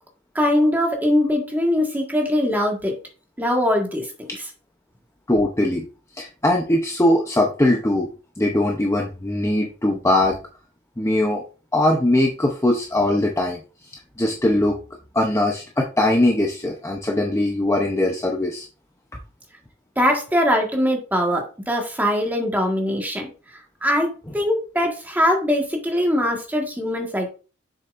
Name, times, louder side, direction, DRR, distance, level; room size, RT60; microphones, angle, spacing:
voice 1, 0.3-3.0 3.4-4.1 20.0-23.3 23.8-27.3, left 1 dB, 10° right, 1 dB, 1.6 m, -21 dB
voice 2, 5.3-5.8 6.1-8.1 8.4-10.4 11.0-11.4 11.7-13.6 14.2-14.8 15.1-18.7, left 1 dB, 15° left, 1 dB, 0.7 m, -20 dB
7.4 x 6.7 x 2.6 m, 0.34 s
head